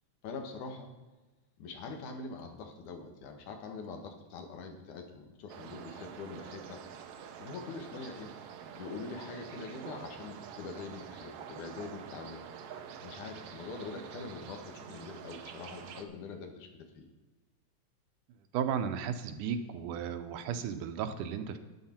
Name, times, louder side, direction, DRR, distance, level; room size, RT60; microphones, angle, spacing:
voice 1, 0.2-0.9 1.6-6.8 7.4-8.3 8.8-12.4 13.0-17.1, left 4 dB, 80° left, 4 dB, 2.8 m, -44 dB
sound 1, 5.5-16.0, right 7 dB, 70° right, 1.5 m, -47 dB
voice 2, 18.5-21.6, right 7 dB, 90° right, 8 dB, 2.3 m, -34 dB
11.5 x 9.8 x 4.4 m, 1.2 s
omnidirectional pair, 3.6 m